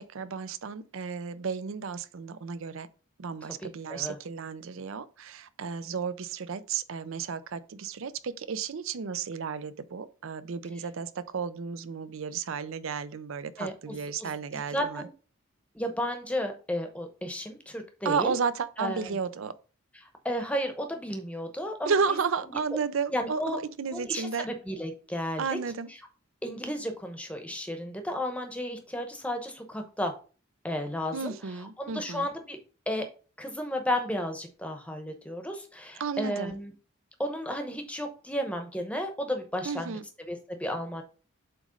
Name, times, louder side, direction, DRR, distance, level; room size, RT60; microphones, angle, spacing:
voice 1, 0.0-2.9 3.2-15.0 18.0-19.5 21.9-24.5 25.4-25.9 31.1-32.3 36.0-36.6 39.7-40.0, right 5 dB, 70° right, 0.5 m, -33 dB
voice 2, 3.4-4.2 5.9-6.0 10.8-10.9 13.6-15.1 15.7-18.3 18.8-19.2 19.9-22.2 22.4-22.8 23.1-23.6 23.9-25.6 25.9-26.0 26.4-30.1 30.6-32.6 32.9-33.1 33.4-36.7 37.2-41.0, equal, 5° left, 0.8 m, -33 dB
7.6 x 3.1 x 5.0 m
head